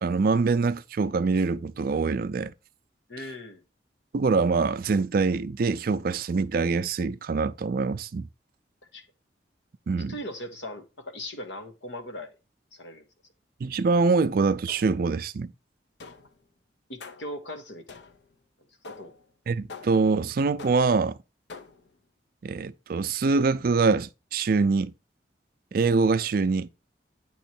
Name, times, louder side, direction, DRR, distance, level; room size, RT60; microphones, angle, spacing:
voice 1, 0.0-2.5 4.1-8.3 9.9-10.1 13.6-15.5 19.5-21.2 22.4-24.9 25.7-26.7, right 4 dB, 55° right, 0.4 m, -24 dB
voice 2, 3.1-3.6 8.9-9.1 10.1-12.4 12.7-13.1 16.9-18.0 18.9-19.1, left 1 dB, 85° left, 1.2 m, -39 dB
sound 1, 14.7-15.2 16.0-16.4 17.0-17.4 17.9-18.3 18.8-19.3 19.7-20.2 20.6-21.0 21.5-21.9, left 4 dB, 70° left, 0.6 m, -45 dB
9.0 x 3.1 x 4.3 m
head